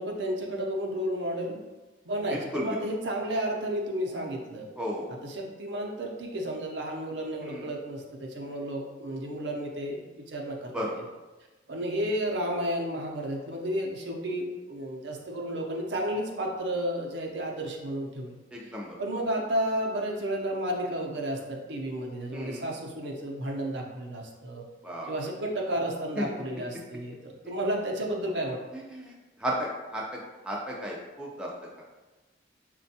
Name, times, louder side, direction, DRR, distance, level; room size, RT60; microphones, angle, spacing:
voice 1, 0.0-1.6 2.0-4.7 5.2-10.0 10.3-10.7 11.7-18.3 18.6-24.6 25.1-28.6, right 1 dB, 70° right, 1 dB, 0.5 m, -32 dB
voice 2, 2.3-2.8 4.8-5.1 7.4-7.7 10.7-10.9 18.5-19.0 22.3-22.7 24.8-25.1 26.2-26.3 28.7-31.7, equal, 5° right, -4 dB, 0.4 m, -34 dB
4.2 x 2.2 x 2.7 m, 1.2 s
head